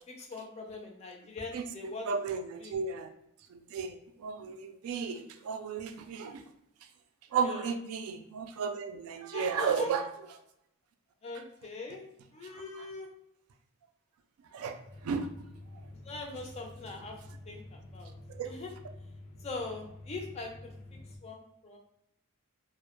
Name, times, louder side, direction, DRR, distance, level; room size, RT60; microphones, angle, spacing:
voice 1, 0.1-2.1 2.6-2.7 7.4-7.7 9.3-9.9 11.2-12.0 12.3-13.1 16.0-17.2 17.5-18.1 18.4-18.7 19.4-20.7 21.2-21.8, left 3 dB, 30° left, 2 dB, 0.4 m, -41 dB
voice 2, 2.1-3.1 3.5-6.4 7.3-10.1 12.5-12.9 14.5-15.3 15.7-15.8 18.3-18.6, right 6 dB, 75° right, 7 dB, 0.3 m, -34 dB
sound 1, 14.8-21.2, left 1 dB, 90° left, 0.5 m, -49 dB
2.1 x 2.0 x 2.9 m, 0.80 s
head